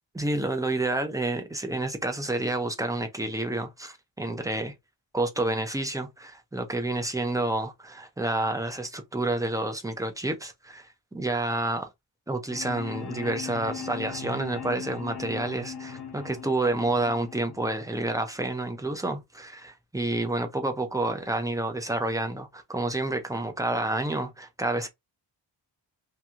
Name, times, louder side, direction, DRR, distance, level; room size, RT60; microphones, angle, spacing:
voice 1, 0.1-4.7 5.1-11.9 12.3-24.9, right 2 dB, 10° right, 0.5 m, -29 dB
sound 1, 12.5-18.5, left 6 dB, 40° left, 0.7 m, -39 dB
2.9 x 2.6 x 2.3 m
wide cardioid pair, 140°, 46 cm